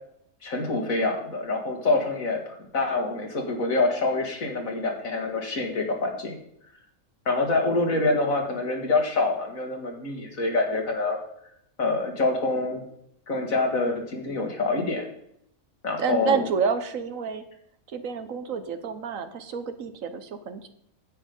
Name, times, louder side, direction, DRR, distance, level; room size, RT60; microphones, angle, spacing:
voice 1, 0.4-6.4 7.3-11.2 11.8-12.8 13.3-15.1 15.8-16.5, left 3 dB, 70° left, 3 dB, 2.4 m, -26 dB
voice 2, 16.0-17.4 17.9-20.7, right 6 dB, 65° right, 10 dB, 1.3 m, -29 dB
10.0 x 8.6 x 5.3 m, 0.73 s
omnidirectional pair, 1.5 m